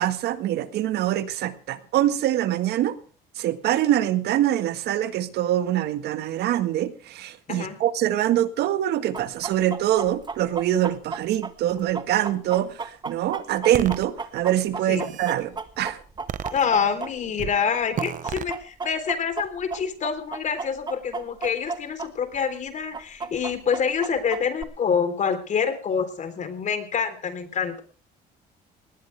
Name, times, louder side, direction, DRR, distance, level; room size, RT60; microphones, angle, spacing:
voice 1, 0.0-3.0 3.4-16.0, right 12 dB, 75° right, 11 dB, 1.7 m, -24 dB
voice 2, 7.5-7.8 14.9-15.1 16.5-27.8, left 6 dB, 45° left, 10 dB, 3.7 m, -26 dB
Chicken rooster, 9.1-17.4 17.7-22.1 22.3-22.4 22.9-24.6, right 4 dB, 25° right, 1.6 m, -33 dB
sound 1, 13.7-14.1 14.7-15.4 16.3-17.0 17.4-17.6 18.0-18.5, right 9 dB, 50° right, 1.0 m, -33 dB
19.5 x 19.0 x 3.5 m, 0.37 s
cardioid pair, 110°, 17 cm